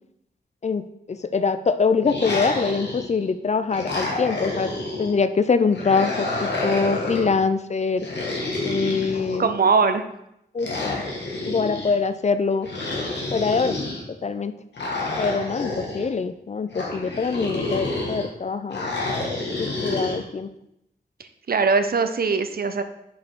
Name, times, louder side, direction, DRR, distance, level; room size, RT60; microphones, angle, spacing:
voice 1, 1.1-4.7 5.0-8.1 8.6-9.5 10.5-11.0 11.5-12.7 13.3-13.8 14.1-14.5 15.2-18.9 19.6-20.5, left 4 dB, 40° left, 12 dB, 0.4 m, -24 dB
sound 1, 2.0-3.2 3.7-5.1 5.7-7.3 8.0-9.7 10.6-11.9 12.6-14.0 14.7-16.1 16.7-18.3 18.7-20.2, left 2 dB, 90° left, 1.6 m, -29 dB
voice 2, 9.4-10.0 21.5-22.8, right 4 dB, 60° right, 8 dB, 0.6 m, -20 dB
5.4 x 5.2 x 4.5 m, 0.80 s
wide cardioid pair, 105°, 18 cm